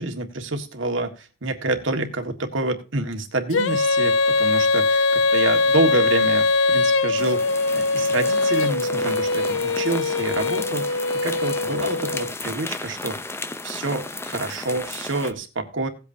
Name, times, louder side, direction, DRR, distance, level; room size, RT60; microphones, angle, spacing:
voice 1, 0.0-13.2 13.6-15.9, right 2 dB, 80° right, 5 dB, 1.7 m, -27 dB
Female singing, 3.5-12.3, left 3 dB, 75° left, 0.5 m, -21 dB
sound 1, 7.2-15.3, left 2 dB, 15° left, 0.6 m, -34 dB
17.5 x 8.3 x 2.7 m, 0.33 s
head